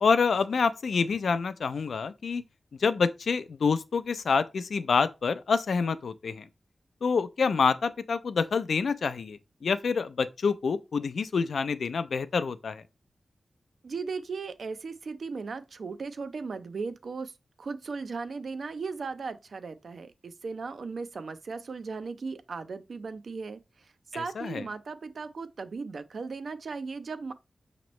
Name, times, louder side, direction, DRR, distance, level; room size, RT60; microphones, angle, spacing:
voice 1, 0.0-2.4 2.8-6.4 7.0-12.8 24.1-24.6, left 5 dB, 85° left, 0.4 m, -27 dB
voice 2, 13.8-17.3 17.6-27.3, right 4 dB, 70° right, 0.5 m, -37 dB
6.0 x 2.9 x 3.0 m
wide cardioid pair, 105°, 0 cm